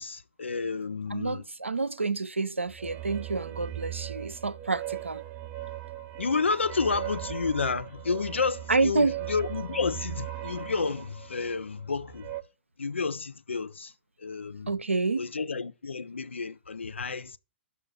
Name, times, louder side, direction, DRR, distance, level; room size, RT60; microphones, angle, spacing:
voice 1, 0.0-1.4 6.2-12.3 12.8-13.9 14.2-14.7 15.2-17.4, left 4 dB, 75° left, 0.5 m, -30 dB
voice 2, 1.1-5.2 8.7-9.2 14.7-15.3, right 3 dB, 85° right, 0.5 m, -28 dB
sound 1, 2.7-12.4, right 13 dB, 25° right, 0.5 m, -39 dB
6.1 x 5.5 x 5.7 m
figure-of-eight pair, 115°, 6 cm